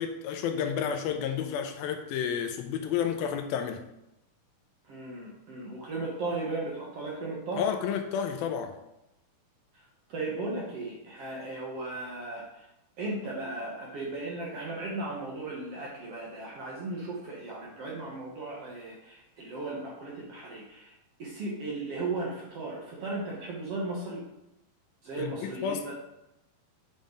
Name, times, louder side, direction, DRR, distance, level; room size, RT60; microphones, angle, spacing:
voice 1, 0.0-3.8 7.6-8.8 25.2-25.9, left 8 dB, 85° left, 6 dB, 2.6 m, -31 dB
voice 2, 4.9-7.6 10.1-12.7 13.0-20.9 21.2-24.2 25.0-25.9, right 2 dB, 55° right, -4 dB, 1.8 m, -36 dB
8.9 x 5.2 x 3.9 m, 0.88 s
omnidirectional pair, 4.2 m